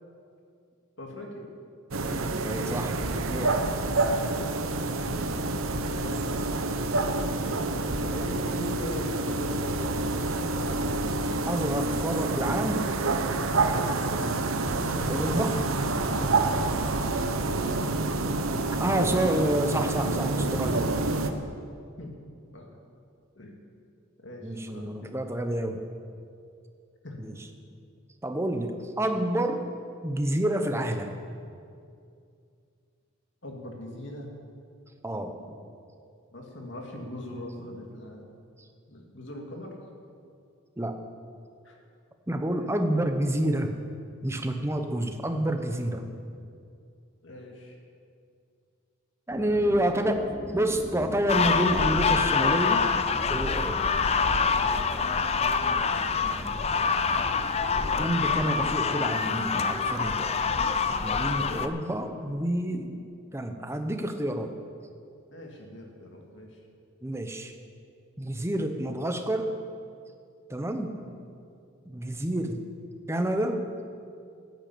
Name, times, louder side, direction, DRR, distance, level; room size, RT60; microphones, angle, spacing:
voice 1, 1.0-1.4 5.9-6.2 8.0-10.0 10.4-10.8 14.7-15.4 22.0-22.1 22.5-22.7 23.4-23.6 24.2-25.1 27.0-27.2 33.4-34.3 36.3-38.2 38.9-39.8 41.6-41.8 45.6-46.3 47.2-47.8 49.3-49.8 62.7-63.0 65.3-66.6 70.9-71.2, left 1 dB, 60° left, 1 dB, 2.5 m, -41 dB
sound 1, 1.9-21.3, right 2 dB, 85° right, 1.0 m, -28 dB
voice 2, 2.1-3.6 11.5-12.9 15.1-15.6 18.8-20.9 24.4-25.8 27.2-27.4 28.2-29.7 30.0-31.2 35.0-35.4 40.8-41.0 42.3-43.8 44.2-46.1 49.3-52.8 53.3-53.8 58.0-60.3 61.0-62.9 63.3-64.6 67.0-67.5 68.2-69.5 70.5-70.9 71.9-72.6 73.1-73.6, right 1 dB, 15° right, 6 dB, 1.0 m, -28 dB
sound 2, 49.3-58.7, equal, 5° left, 2.1 m, -41 dB
sound 3, 51.3-61.7, left 5 dB, 30° left, 0.5 m, -26 dB
14.0 x 9.3 x 8.6 m, 2.4 s
head